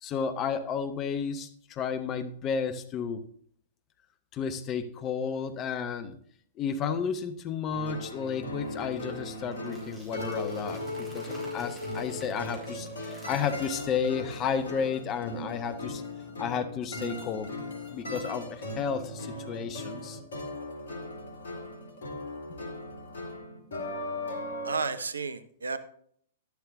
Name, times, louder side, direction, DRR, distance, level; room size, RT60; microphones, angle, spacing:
voice 1, 0.0-3.2 4.3-6.2 6.6-16.0 16.4-17.5 17.9-20.2, left 6 dB, 30° left, 11 dB, 0.9 m, -32 dB
sound 1, 7.7-24.8, left 1 dB, 65° left, 2.1 m, -38 dB
sound 2, 8.6-13.6, equal, 5° right, 4.5 m, -54 dB
voice 2, 24.6-25.8, right 4 dB, 75° right, 12 dB, 0.8 m, -32 dB
11.5 x 11.5 x 2.6 m, 0.63 s
figure-of-eight pair, 105°, 0 cm